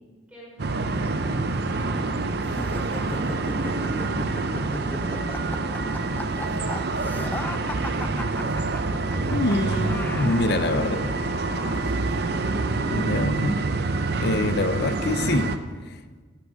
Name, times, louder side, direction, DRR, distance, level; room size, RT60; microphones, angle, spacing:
voice 1, 0.3-4.5 5.0-6.1 10.5-12.0 12.8-13.0, equal, 5° right, -6 dB, 4.9 m, -46 dB
sound 1, 0.6-15.6, right 3 dB, 50° right, 0.6 m, -26 dB
sound 2, 2.4-10.9, left 1 dB, 10° left, 0.4 m, -37 dB
Domestic sounds home sounds, 8.3-13.6 13.9-14.0, right 1 dB, 80° right, 1.6 m, -48 dB
voice 2, 9.3-11.0 12.9-13.6 14.2-15.6 15.9-16.0, left 2 dB, 55° left, 11 dB, 0.6 m, -25 dB
14.0 x 8.6 x 6.3 m, 1.4 s
head